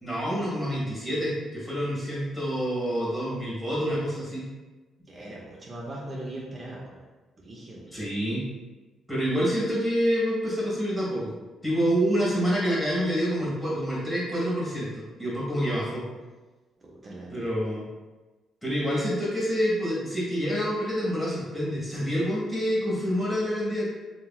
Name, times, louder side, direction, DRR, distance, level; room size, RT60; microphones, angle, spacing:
voice 1, 0.0-4.4 7.9-8.4 9.1-11.3 11.6-16.0 17.3-17.8 18.6-23.9, equal, 15° left, -6 dB, 1.4 m, -27 dB
voice 2, 5.1-7.0 7.4-8.1 16.8-17.5, right 1 dB, 35° right, -4 dB, 0.5 m, -40 dB
2.9 x 2.7 x 2.2 m, 1.2 s
cardioid pair, 90°, 0 cm